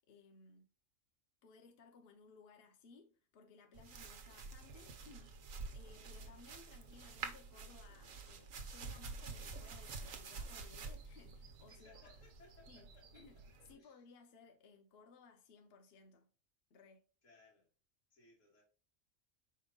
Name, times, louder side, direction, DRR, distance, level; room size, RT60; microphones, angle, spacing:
voice 1, 0.1-0.7 1.4-5.5 5.7-12.2 12.7-13.4 13.7-16.3 16.7-17.0, left 4 dB, 55° left, 1.0 m, -61 dB
sound 1, 3.7-13.7, right 4 dB, 90° right, 1.2 m, -49 dB
voice 2, 11.7-13.2 13.6-14.0 17.2-17.7 18.1-18.6, left 2 dB, 75° left, 2.3 m, -65 dB
5.2 x 4.4 x 2.3 m
omnidirectional pair, 1.3 m